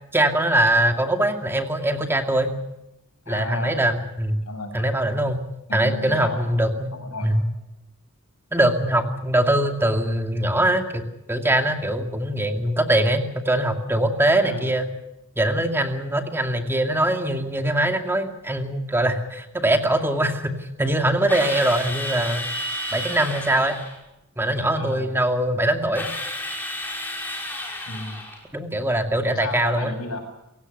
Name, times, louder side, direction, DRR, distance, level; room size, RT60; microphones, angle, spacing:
voice 1, 0.1-2.5 3.3-4.4 4.7-5.4 5.7-6.9 7.2-7.5 8.5-11.0 11.3-14.9 15.4-22.5 22.9-23.8 24.4-26.1 28.5-29.9, right 1 dB, 10° right, 5 dB, 2.4 m, -22 dB
voice 2, 3.3-3.7 4.4-4.8 5.7-6.5 6.9-7.3 14.4-14.7 24.8-25.1 27.9-28.2 29.3-30.2, left 1 dB, 80° left, 4 dB, 7.7 m, -32 dB
Drill, 21.3-24.0 25.9-28.4, left 1 dB, 10° left, 5.9 m, -31 dB
28.5 x 16.5 x 6.7 m, 0.90 s
head